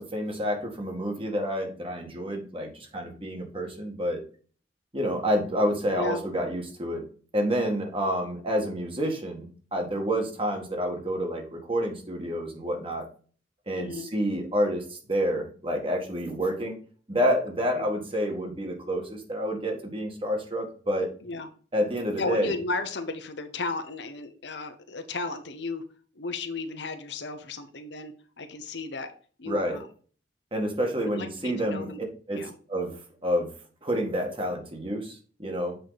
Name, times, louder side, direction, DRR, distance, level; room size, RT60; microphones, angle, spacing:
voice 1, 0.0-4.2 4.9-7.0 7.3-13.1 13.7-16.8 17.1-21.1 21.7-22.5 29.5-29.8 30.5-31.9 32.3-33.5 33.8-35.8, equal, 30° right, 1 dB, 2.0 m, -29 dB
voice 2, 13.7-14.1 17.7-17.9 21.2-21.5 22.2-25.8 26.1-29.1 29.4-29.9 31.0-32.0 32.4-32.5, left 3 dB, 70° left, 8 dB, 1.0 m, -34 dB
7.8 x 4.9 x 4.1 m, 0.41 s
head